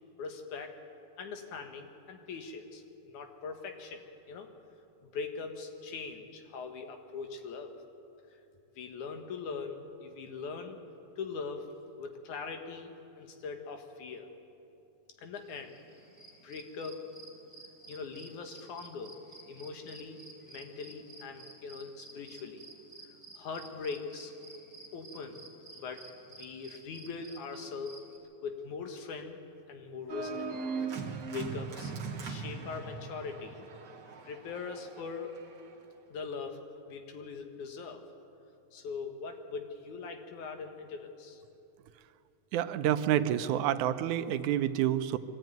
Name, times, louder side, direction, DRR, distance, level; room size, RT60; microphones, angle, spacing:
voice 1, 0.2-0.7 1.2-4.5 5.0-7.7 8.3-8.4 8.8-10.8 11.2-11.7 12.0-14.3 15.2-15.8 16.4-17.0 17.9-19.2 19.5-20.2 20.4-22.7 23.4-24.3 24.9-25.4 25.8-26.0 26.3-28.0 28.4-29.4 29.7-30.5 31.0-31.1 31.3-31.9 32.2-33.7 34.2-35.3 36.1-36.6 36.9-38.0 38.7-41.4, left 5 dB, 80° left, 5 dB, 2.9 m, -41 dB
sound 1, 15.3-28.2, right 2 dB, 10° left, 4.4 m, -53 dB
Organ, 30.1-35.7, right 5 dB, 50° right, 1.5 m, -39 dB
voice 2, 42.5-45.2, right 11 dB, 80° right, 11 dB, 2.1 m, -28 dB
23.5 x 13.5 x 9.2 m, 2.9 s
omnidirectional pair, 3.4 m